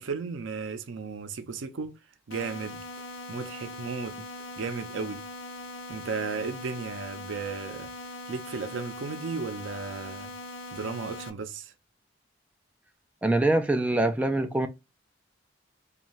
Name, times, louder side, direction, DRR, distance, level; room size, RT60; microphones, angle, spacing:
voice 1, 0.0-2.0 2.3-2.8 3.3-4.2 4.6-5.2 5.9-7.9 8.3-10.3 10.7-11.7, right 4 dB, 80° right, 0.5 m, -35 dB
sound 1, 2.3-11.3, left 2 dB, 80° left, 0.5 m, -41 dB
voice 2, 13.2-14.7, right 2 dB, 5° right, 0.3 m, -24 dB
2.6 x 2.3 x 2.9 m
head